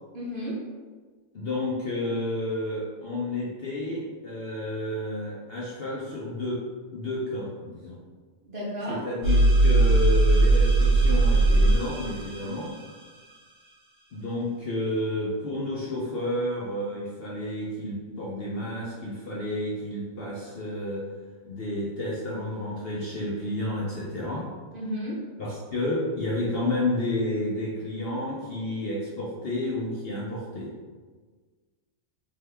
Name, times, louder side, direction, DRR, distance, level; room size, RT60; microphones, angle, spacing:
voice 1, 0.1-0.6 8.4-9.0 24.7-25.2, equal, 45° right, -6 dB, 0.8 m, -32 dB
voice 2, 1.3-6.6 6.9-8.0 8.9-12.8 14.1-21.1 21.4-24.5 25.4-30.7, left 1 dB, 55° left, -5 dB, 0.7 m, -31 dB
sound 1, 9.2-12.8, right 2 dB, 85° left, 2.0 m, -20 dB
3.6 x 3.3 x 3.4 m, 1.4 s
omnidirectional pair, 1.5 m